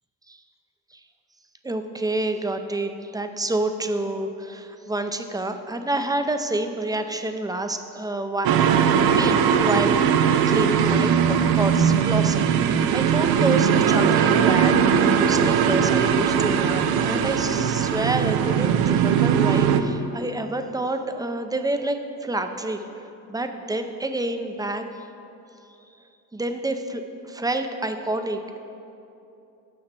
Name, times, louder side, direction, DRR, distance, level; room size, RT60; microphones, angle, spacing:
voice 1, 1.6-10.0 10.5-14.8 15.1-22.9 23.3-24.8 26.3-28.6, right 2 dB, 10° right, 7 dB, 0.6 m, -28 dB
sound 1, 8.4-19.8, right 7 dB, 75° right, 0.6 m, -20 dB
7.0 x 5.6 x 6.8 m, 2.8 s
supercardioid pair, 85°, 37 cm